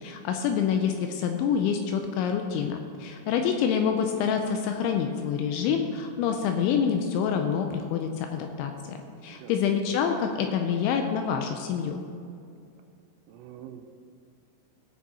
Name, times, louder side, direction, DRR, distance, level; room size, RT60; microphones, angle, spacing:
voice 1, 0.0-9.0 9.2-12.0, left 7 dB, 85° left, 5 dB, 2.7 m, -27 dB
voice 2, 9.3-9.6 13.3-13.9, right 10 dB, 85° right, 6 dB, 3.2 m, -45 dB
16.0 x 6.3 x 4.1 m, 2.4 s
omnidirectional pair, 5.7 m